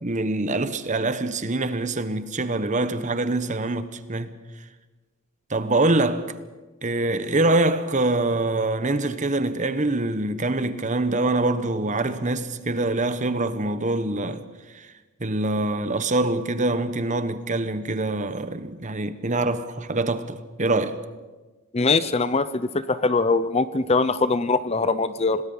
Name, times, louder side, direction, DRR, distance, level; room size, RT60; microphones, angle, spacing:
voice 1, 0.0-4.4 5.5-6.4 6.8-14.5 14.7-14.9 15.2-21.0, right 2 dB, 35° right, 1.1 m, -24 dB
voice 2, 21.7-25.4, left 3 dB, 30° left, 0.6 m, -22 dB
26.5 x 19.0 x 5.5 m
head